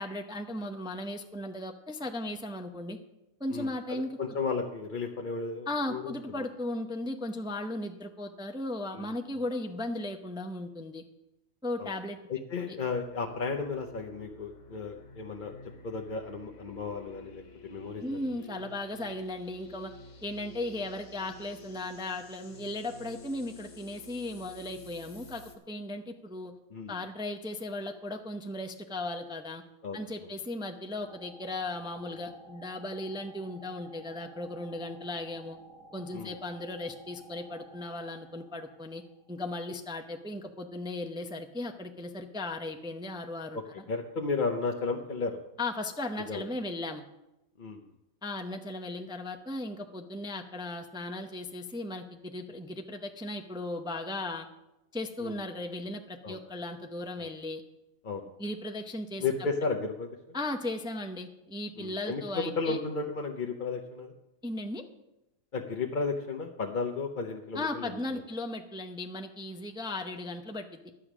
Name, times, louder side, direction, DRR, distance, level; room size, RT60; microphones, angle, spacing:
voice 1, 0.0-3.0 3.4-4.2 5.7-11.0 11.6-12.2 12.6-12.8 18.0-19.9 20.2-26.5 26.9-29.6 29.9-35.6 35.9-39.0 39.3-43.6 45.6-47.0 48.2-54.5 54.9-57.6 58.4-59.2 60.3-62.8 64.4-64.8 67.5-70.8, left 2 dB, 5° right, 5 dB, 0.5 m, -36 dB
voice 2, 3.5-6.5 8.9-9.1 11.8-11.9 12.3-15.5 15.8-18.2 26.7-26.9 29.8-30.0 36.1-36.3 43.5-43.6 43.9-45.4 46.3-46.5 47.6-47.8 55.2-55.4 56.2-56.4 57.2-57.3 58.0-58.2 59.2-60.1 61.8-64.1 65.5-67.9, left 4 dB, 45° left, 2 dB, 0.8 m, -34 dB
sound 1, 12.8-25.6, left 2 dB, 65° left, 1.6 m, -50 dB
sound 2, 31.0-39.6, right 1 dB, 85° right, 2.0 m, -54 dB
11.5 x 8.4 x 6.1 m, 0.93 s
omnidirectional pair, 1.4 m